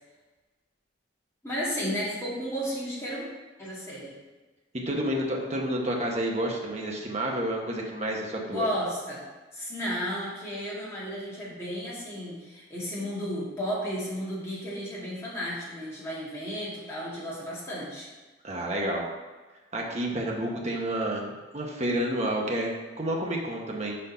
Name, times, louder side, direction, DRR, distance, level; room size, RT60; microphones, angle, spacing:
voice 1, 1.4-3.3 3.6-4.1 8.5-9.2 9.5-18.1, equal, 15° left, -8 dB, 1.9 m, -33 dB
voice 2, 4.9-8.7 18.4-19.1 19.7-22.7 23.0-24.0, right 1 dB, 35° right, -1 dB, 0.9 m, -29 dB
5.3 x 4.4 x 5.5 m, 1.2 s
head